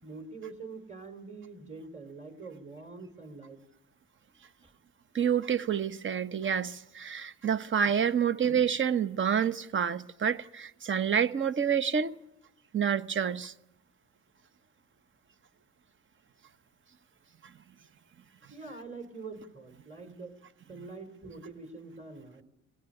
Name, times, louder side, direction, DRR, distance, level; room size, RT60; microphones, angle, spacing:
voice 1, 0.0-3.6 18.5-20.4 20.7-22.4, right 4 dB, 25° right, 3.5 m, -44 dB
voice 2, 5.1-12.2 12.7-13.5, right 8 dB, 40° right, 0.9 m, -28 dB
20.0 x 16.5 x 9.9 m
cardioid pair, 90°, 30 cm